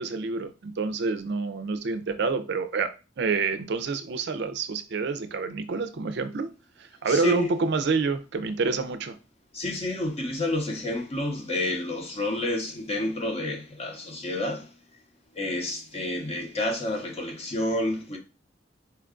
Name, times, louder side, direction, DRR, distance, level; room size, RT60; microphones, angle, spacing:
voice 1, 0.0-2.9 3.2-6.5 6.8-9.2, right 4 dB, 60° right, 0.4 m, -27 dB
voice 2, 7.1-7.5 9.5-14.7 15.3-18.2, left 1 dB, 30° left, 0.8 m, -29 dB
4.4 x 2.3 x 3.6 m
head